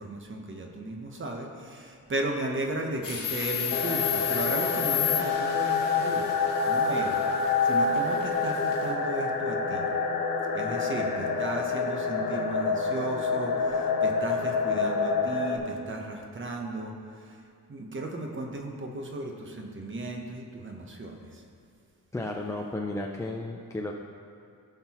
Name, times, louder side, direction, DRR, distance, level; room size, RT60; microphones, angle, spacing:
voice 1, 0.0-6.2 6.7-9.9 10.5-17.4 17.7-21.4, right 2 dB, 35° right, 2 dB, 1.0 m, -35 dB
sound 1, 3.0-8.9, left 12 dB, 65° left, 1.3 m, -33 dB
sound 2, 3.7-15.6, left 4 dB, 90° left, 1.1 m, -27 dB
voice 2, 22.1-23.9, left 2 dB, 10° left, -1 dB, 0.4 m, -33 dB
16.5 x 5.7 x 3.0 m, 2.4 s
wide cardioid pair, 145°, 36 cm